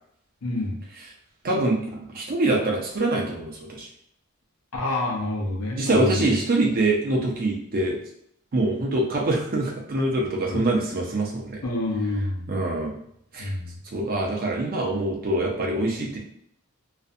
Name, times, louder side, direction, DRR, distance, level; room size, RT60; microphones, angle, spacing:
voice 1, 0.4-0.8 4.7-6.3 10.5-10.6 11.6-12.5 13.4-13.7, left 2 dB, 80° left, -1 dB, 0.7 m, -28 dB
voice 2, 1.4-3.9 5.8-8.0 8.5-11.6 12.5-12.9 13.3-13.5 13.9-16.2, right 2 dB, 40° right, -1 dB, 0.5 m, -24 dB
2.5 x 2.1 x 2.5 m, 0.70 s
head